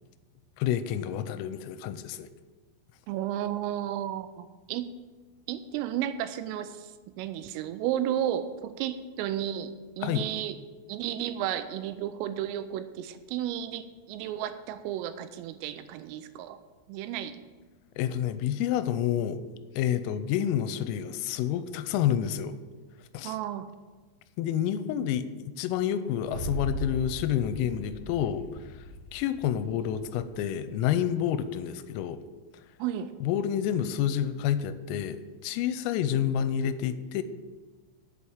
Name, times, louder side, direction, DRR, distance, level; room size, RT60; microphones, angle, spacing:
voice 1, 0.6-2.3 10.0-10.3 18.0-19.4 19.8-22.6 23.1-23.4 24.4-25.3 25.6-28.4 29.1-32.2 33.2-37.2, left 10 dB, 90° left, 12 dB, 3.3 m, -29 dB
voice 2, 3.1-4.9 5.5-6.9 7.2-10.6 10.9-16.6 16.9-17.4 23.2-23.7 32.8-33.1, right 11 dB, 85° right, 11 dB, 3.2 m, -33 dB
sound 1, 26.2-30.5, equal, 65° right, 3.1 m, -38 dB
8.4 x 7.7 x 7.1 m, 1.3 s
omnidirectional pair, 5.9 m